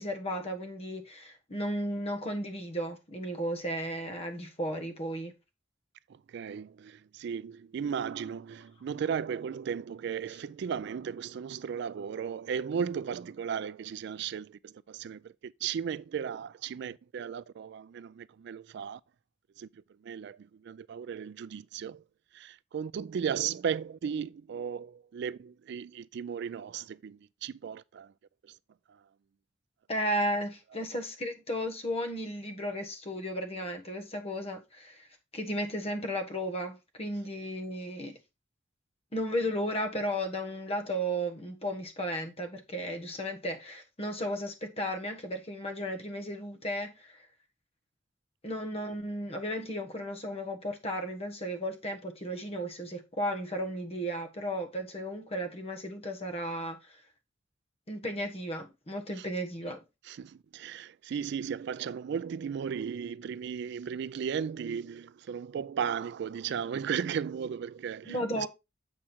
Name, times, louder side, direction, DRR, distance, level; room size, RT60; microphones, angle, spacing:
voice 1, 0.0-5.3 29.9-35.1 35.3-38.2 39.1-47.2 48.4-57.0 57.9-59.8 68.1-68.5, equal, 30° left, 1.3 m, -34 dB
voice 2, 6.1-19.0 19.6-22.0 22.3-28.1 28.4-28.5 28.9-29.0 30.7-30.8 59.1-59.3 60.0-68.5, right 7 dB, 65° right, 0.3 m, -36 dB
7.4 x 4.9 x 4.4 m
head